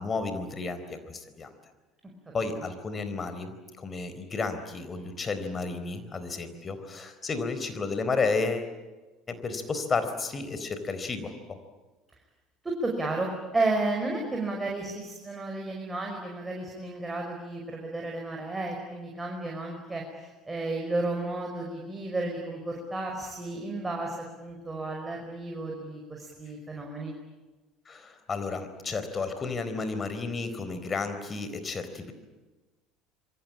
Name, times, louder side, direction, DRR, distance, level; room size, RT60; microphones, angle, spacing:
voice 1, 0.0-1.5 2.3-8.7 9.3-11.6 27.9-32.1, left 4 dB, 30° left, 10 dB, 4.1 m, -32 dB
voice 2, 12.6-27.1, right 2 dB, 15° right, 0 dB, 5.5 m, -32 dB
26.5 x 24.0 x 8.7 m, 1.2 s
figure-of-eight pair, 65°, 0 cm